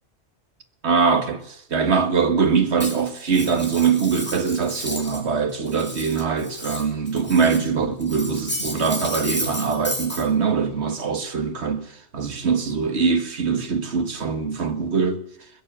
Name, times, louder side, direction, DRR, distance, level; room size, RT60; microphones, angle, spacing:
voice 1, 0.8-11.8 12.1-15.2, right 5 dB, 65° right, 1.8 m, -22 dB
Cutlery silverware, 2.8-5.3 5.5-7.7 8.0-10.2, equal, 10° left, 2.5 m, -32 dB
21.5 x 7.3 x 8.8 m
omnidirectional pair, 1.2 m